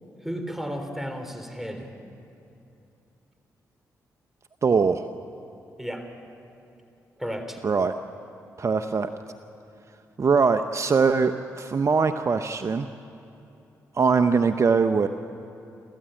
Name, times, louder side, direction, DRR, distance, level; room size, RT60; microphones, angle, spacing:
voice 1, 0.2-1.9 5.8-6.1 7.2-7.6, equal, 5° right, 6 dB, 3.7 m, -33 dB
voice 2, 4.6-5.1 7.6-7.9 8.6-9.1 10.2-12.9 13.9-15.1, right 5 dB, 45° right, 9 dB, 0.8 m, -22 dB
29.5 x 14.0 x 8.9 m, 2.8 s
supercardioid pair, 55°, 7 cm